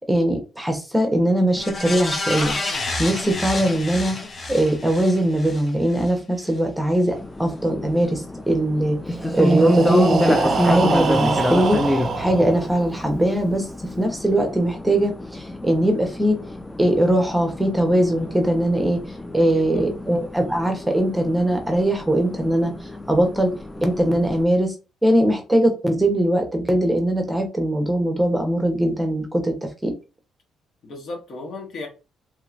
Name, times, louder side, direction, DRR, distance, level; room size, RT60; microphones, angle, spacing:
voice 1, 0.1-2.5 3.0-4.2 4.5-13.7 14.0-16.4 16.8-23.5 23.8-24.7 25.0-29.9, right 1 dB, 5° right, 3 dB, 0.9 m, -21 dB
sound 1, 1.6-6.1 6.5-6.6, left 2 dB, 35° left, 0.8 m, -29 dB
sound 2, 7.1-24.4, left 1 dB, 15° left, 0.4 m, -28 dB
Breathing, 9.2-13.1, right 4 dB, 55° right, 0.5 m, -25 dB
voice 2, 19.5-19.9 30.8-31.9, left 3 dB, 65° left, 1 dB, 1.3 m, -35 dB
3.1 x 2.9 x 2.5 m, 0.29 s
cardioid pair, 90°, 0 cm